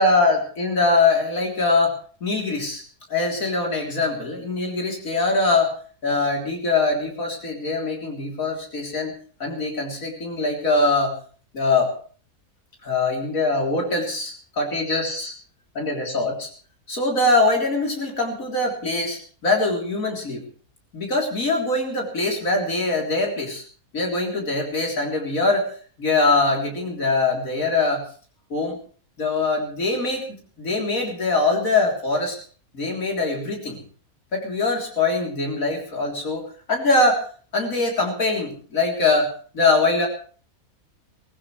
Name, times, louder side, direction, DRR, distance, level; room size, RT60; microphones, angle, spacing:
voice 1, 0.0-2.0 2.2-2.8 3.1-9.1 9.4-11.1 11.5-11.9 12.8-15.3 15.8-16.5 16.9-20.4 20.9-23.6 23.9-25.7 26.0-28.0 28.5-28.8 29.2-30.2 30.6-32.4 32.7-33.8 34.3-37.2 37.5-40.1, left 3 dB, 75° left, 0 dB, 4.0 m, -22 dB
23.0 x 16.5 x 3.3 m, 0.42 s
omnidirectional pair, 1.5 m